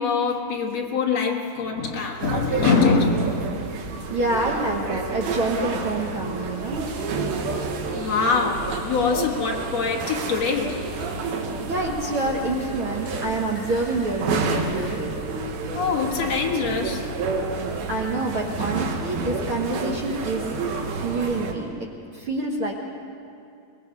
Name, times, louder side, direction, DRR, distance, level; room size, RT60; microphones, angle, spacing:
voice 1, 0.0-3.6 7.3-7.4 7.9-10.9 15.7-17.1, left 4 dB, 55° left, 1 dB, 2.2 m, -24 dB
sound 1, 2.2-21.5, right 4 dB, 80° right, 3.4 m, -30 dB
voice 2, 4.1-6.9 11.6-15.0 17.9-20.5 20.9-21.9 22.1-22.7, right 2 dB, 55° right, -1 dB, 1.5 m, -27 dB
Fart, 6.9-8.4 8.6-11.9 12.1-14.9, left 1 dB, 15° left, 5.6 m, -44 dB
23.0 x 20.5 x 5.5 m, 2.5 s
omnidirectional pair, 4.3 m